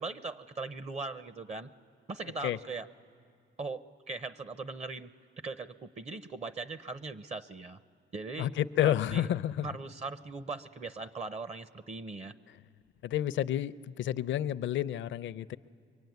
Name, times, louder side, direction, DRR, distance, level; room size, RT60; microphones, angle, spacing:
voice 1, 0.0-1.7 2.1-2.9 3.6-5.1 5.4-7.8 8.1-8.5 8.8-9.3 9.6-12.3, right 3 dB, 35° right, 13 dB, 0.7 m, -39 dB
voice 2, 8.4-9.7 13.0-15.6, left 11 dB, 70° left, 15 dB, 0.6 m, -30 dB
24.0 x 23.0 x 9.4 m, 2.3 s
cardioid pair, 90°, 20 cm